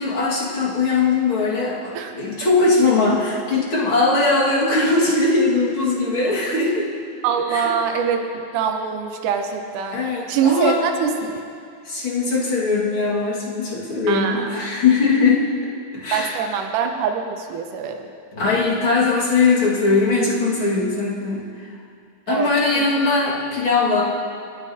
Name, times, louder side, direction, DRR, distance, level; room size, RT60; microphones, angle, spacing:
voice 1, 0.0-6.9 7.5-7.7 9.9-10.8 11.9-16.4 18.3-21.5 22.3-24.0, left 3 dB, 45° left, -5 dB, 2.0 m, -20 dB
voice 2, 7.2-8.2 8.5-11.1 14.1-14.6 16.1-18.0 22.3-22.9, right 7 dB, 80° right, 4 dB, 1.9 m, -23 dB
30.0 x 10.0 x 2.8 m, 2.3 s
omnidirectional pair, 4.6 m